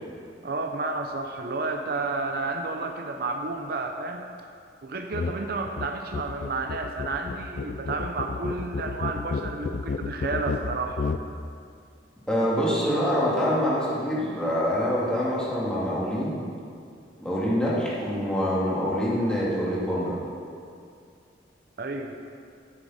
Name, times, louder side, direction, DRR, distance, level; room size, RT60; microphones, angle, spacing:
voice 1, 0.4-4.3 4.8-11.0 21.8-22.1, right 3 dB, 60° right, 4 dB, 0.6 m, -31 dB
sound 1, 5.1-5.4 5.7-11.3, left 4 dB, 45° left, 0.3 m, -32 dB
voice 2, 12.3-16.4 17.2-20.2, equal, 5° left, -7 dB, 2.0 m, -25 dB
9.7 x 8.2 x 4.1 m, 2.4 s
head